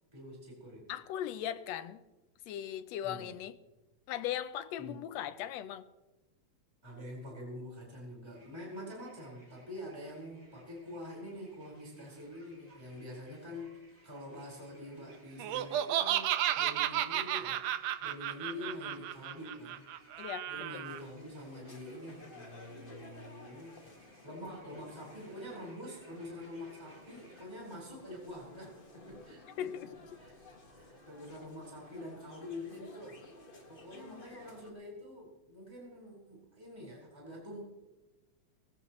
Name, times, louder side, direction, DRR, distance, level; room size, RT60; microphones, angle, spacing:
voice 1, 0.1-0.9 3.0-3.3 4.8-5.0 6.8-13.7 14.0-17.6 18.0-19.8 20.5-23.8 24.2-29.9 30.2-30.3 30.7-33.2 33.7-37.6, left 1 dB, 10° right, 4.6 m, -46 dB
voice 2, 0.9-2.0 2.5-3.6 4.1-5.8 20.2-20.8 29.6-29.9 33.9-34.3, left 11 dB, 75° left, 1.7 m, -39 dB
sound 1, 8.3-27.5, right 1 dB, 30° right, 6.2 m, -63 dB
Laughter, 15.4-21.0, right 12 dB, 75° right, 1.6 m, -33 dB
sound 2, 20.8-34.7, left 2 dB, 25° left, 1.1 m, -55 dB
20.0 x 15.0 x 3.1 m
omnidirectional pair, 3.4 m